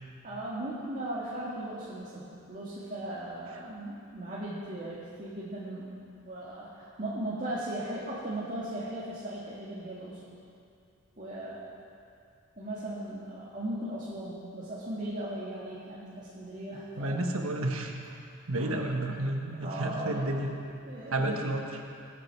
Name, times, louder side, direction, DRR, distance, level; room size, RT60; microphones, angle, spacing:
voice 1, 0.2-10.3 11.2-11.6 12.6-17.2 18.5-18.8 19.6-20.3 20.9-21.5, right 1 dB, 35° right, -8 dB, 2.0 m, -37 dB
voice 2, 17.0-17.9 18.5-20.5 21.1-21.6, right 1 dB, 75° right, 2 dB, 1.4 m, -31 dB
23.0 x 8.6 x 4.7 m, 2.5 s
head